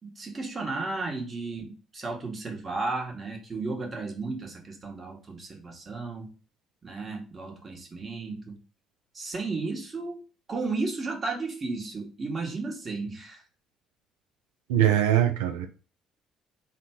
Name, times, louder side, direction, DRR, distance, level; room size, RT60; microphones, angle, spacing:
voice 1, 0.0-6.3 6.8-8.6 9.1-10.2 10.5-13.4, right 3 dB, 35° right, 1.3 m, -34 dB
voice 2, 14.7-15.7, right 11 dB, 75° right, 0.4 m, -22 dB
3.6 x 2.3 x 4.4 m
figure-of-eight pair, 50°, 0 cm